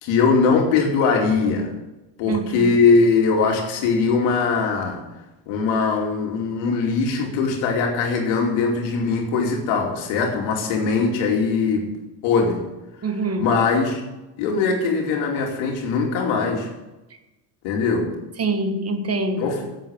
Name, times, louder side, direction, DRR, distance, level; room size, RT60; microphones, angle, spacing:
voice 1, 0.0-1.7 2.2-5.0 5.5-11.9 12.2-12.6 13.4-14.0 14.4-16.7 17.6-18.1 19.4-19.7, left 4 dB, 85° left, 1 dB, 2.8 m, -21 dB
voice 2, 2.3-2.7 13.0-13.6 18.4-19.5, right 3 dB, 35° right, 8 dB, 1.6 m, -25 dB
9.0 x 8.3 x 8.8 m, 1.0 s
cardioid pair, 105°, 44 cm